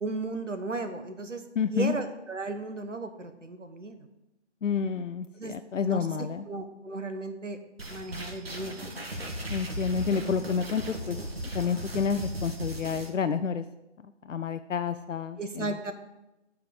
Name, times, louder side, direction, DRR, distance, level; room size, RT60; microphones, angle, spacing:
voice 1, 0.0-1.4 1.7-4.0 5.4-5.5 5.8-6.1 6.5-7.6 7.9-8.9 15.4-15.9, right 3 dB, 80° right, 8 dB, 1.2 m, -35 dB
voice 2, 1.6-1.9 4.6-6.4 9.5-11.2 11.5-13.6 14.2-15.9, left 6 dB, 90° left, 10 dB, 0.5 m, -29 dB
sound 1, 7.8-13.1, equal, 55° right, 1.4 m, -37 dB
7.8 x 4.9 x 7.0 m, 0.95 s
figure-of-eight pair, 170°, 36 cm